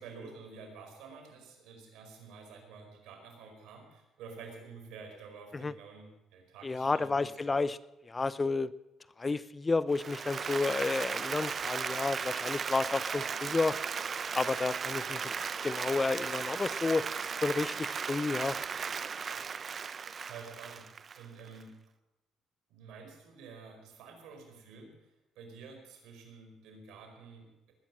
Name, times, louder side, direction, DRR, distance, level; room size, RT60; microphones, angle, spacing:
voice 1, 0.0-7.3 20.2-21.8 22.7-27.7, right 5 dB, 80° right, 3 dB, 4.7 m, -50 dB
voice 2, 6.6-7.8 8.1-8.7 9.2-13.8 14.3-15.2 15.6-17.0 17.4-18.6, left 3 dB, 25° left, 17 dB, 0.6 m, -31 dB
Applause, 9.9-21.6, right 6 dB, 40° right, 0.6 m, -36 dB
20.0 x 10.5 x 6.3 m, 0.97 s
cardioid pair, 90°, 0 cm